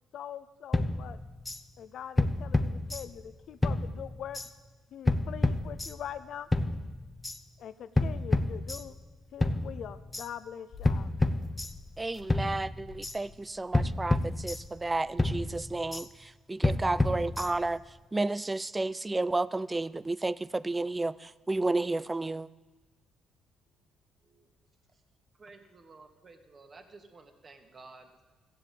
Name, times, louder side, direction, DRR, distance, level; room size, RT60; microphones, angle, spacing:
voice 1, 0.1-1.2 1.8-4.4 4.9-6.5 7.6-9.0 9.3-11.1, left 9 dB, 70° left, 0.6 m, -42 dB
sound 1, 0.7-1.6 2.2-3.3 3.6-4.5 5.1-6.2 6.5-7.4 8.0-9.1 9.4-10.3 10.8-12.0 12.3-13.2 13.7-14.9 15.2-16.1 16.6-17.8, left 2 dB, 15° left, 0.8 m, -29 dB
sound 2, 10.7-15.6, left 4 dB, 50° left, 1.3 m, -52 dB
voice 2, 12.0-16.1 16.5-17.8 18.1-22.5, right 2 dB, 20° right, 0.4 m, -31 dB
voice 3, 25.4-28.2, right 3 dB, 40° right, 2.0 m, -53 dB
15.0 x 7.6 x 8.6 m
cardioid pair, 85°, 0 cm